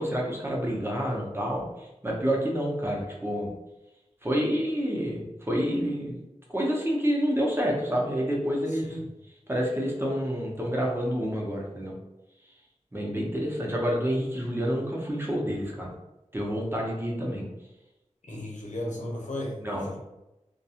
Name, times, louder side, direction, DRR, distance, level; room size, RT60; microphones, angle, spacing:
voice 1, 0.0-3.5 4.2-6.2 6.5-9.0 9.5-11.9 12.9-15.9 16.3-17.5 19.6-20.0, equal, 20° right, -2 dB, 0.7 m, -28 dB
voice 2, 18.3-20.0, left 1 dB, 75° left, -3 dB, 0.7 m, -35 dB
2.3 x 2.3 x 2.8 m, 0.97 s
wide cardioid pair, 55°, 13 cm